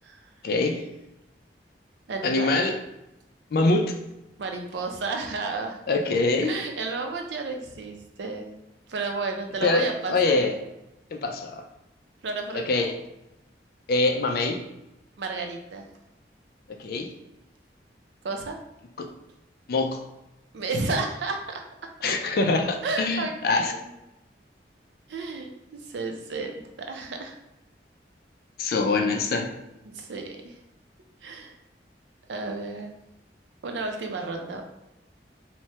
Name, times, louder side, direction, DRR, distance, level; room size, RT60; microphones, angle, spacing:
voice 1, 0.4-0.8 2.2-2.8 3.5-4.0 5.9-6.5 9.6-10.5 11.1-11.6 12.5-13.0 13.9-14.6 16.7-17.1 19.0-19.1 19.7-20.0 22.0-23.7 28.6-29.5, left 3 dB, 55° left, 5 dB, 0.4 m, -24 dB
voice 2, 2.1-2.6 4.4-5.8 6.4-8.5 8.9-10.4 12.2-12.9 15.2-15.9 18.2-18.6 20.5-21.6 22.8-23.3 23.7-23.9 25.1-27.4 29.9-30.6 31.2-31.5 32.3-32.9 33.6-34.6, right 3 dB, 80° right, 3 dB, 0.5 m, -32 dB
3.2 x 2.1 x 2.8 m, 0.92 s
head